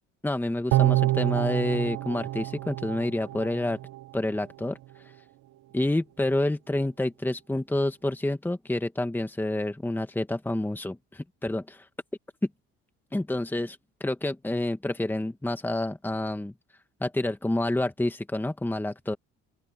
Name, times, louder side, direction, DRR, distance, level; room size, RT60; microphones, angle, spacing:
voice 1, 0.2-3.8 4.1-4.8 5.7-11.9 13.1-16.5 17.0-19.2, left 1 dB, 5° left, 1.6 m, -28 dB
sound 1, 0.7-4.0 4.4-4.5, right 17 dB, 75° right, 1.5 m, -27 dB
open air
cardioid pair, 95°, 29 cm